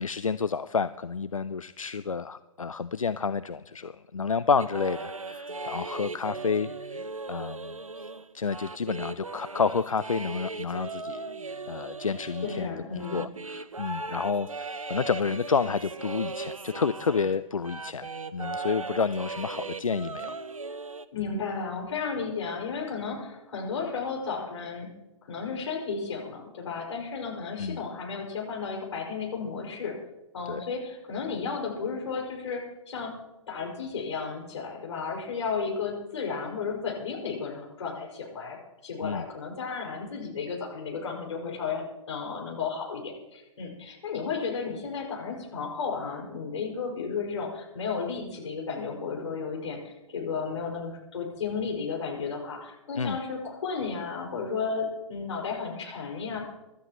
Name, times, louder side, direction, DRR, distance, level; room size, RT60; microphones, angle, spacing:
voice 1, 0.0-7.0 7.3-8.1 8.3-11.2 11.7-20.3 27.6-27.8 30.5-30.6 39.0-39.3 53.0-53.2, left 5 dB, 90° left, 14 dB, 0.4 m, -30 dB
sound 1, 4.6-17.4 17.6-21.0, right 3 dB, 90° right, 0.7 m, -38 dB
voice 2, 12.4-13.3 21.1-24.9 25.3-30.0 30.3-33.1 33.5-38.6 38.8-56.4, left 5 dB, 65° left, 0 dB, 5.3 m, -33 dB
24.5 x 13.0 x 3.0 m, 1.0 s
figure-of-eight pair, 120°, 17 cm